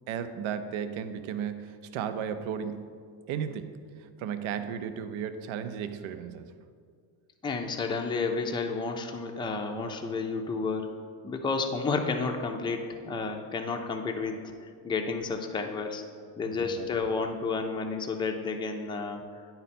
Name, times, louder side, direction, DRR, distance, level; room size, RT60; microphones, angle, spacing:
voice 1, 0.1-2.9 3.3-6.5 16.5-16.9, right 8 dB, 80° right, 10 dB, 0.6 m, -35 dB
voice 2, 7.4-10.9 11.2-16.0 16.4-19.4, left 4 dB, 10° left, 3 dB, 0.4 m, -31 dB
9.8 x 4.0 x 4.2 m, 2.1 s
cardioid pair, 115°, 48 cm